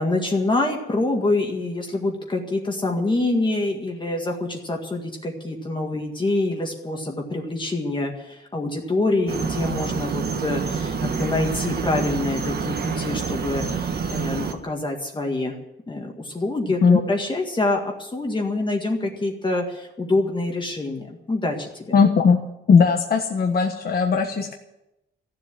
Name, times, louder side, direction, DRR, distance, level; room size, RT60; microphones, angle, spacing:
voice 1, 0.0-15.6 15.9-22.0, left 2 dB, 25° left, 1 dB, 1.9 m, -26 dB
sound 1, 9.3-14.5, right 5 dB, 50° right, 1.5 m, -27 dB
voice 2, 21.9-22.4 22.7-24.5, left 5 dB, 50° left, 2 dB, 1.3 m, -18 dB
15.0 x 7.7 x 9.9 m, 0.90 s
wide cardioid pair, 145°, 21 cm